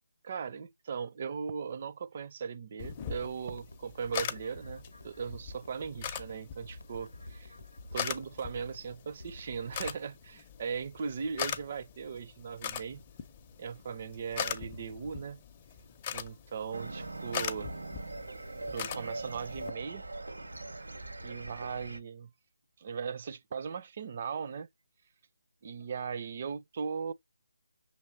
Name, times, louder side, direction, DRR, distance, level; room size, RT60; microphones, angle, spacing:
voice 1, 0.2-7.5 7.9-13.0 13.6-15.4 16.1-17.7 18.7-20.0 21.2-22.3 22.8-24.7 25.6-27.1, right 6 dB, 35° right, 0.4 m, -38 dB
Camera Click, 2.8-19.7, left 8 dB, 25° left, 0.5 m, -41 dB
sound 1, 3.5-9.9, left 1 dB, 90° left, 0.7 m, -50 dB
sound 2, 16.7-22.0, right 2 dB, 75° right, 0.7 m, -41 dB
6.4 x 2.9 x 2.6 m
figure-of-eight pair, 155°, 0 cm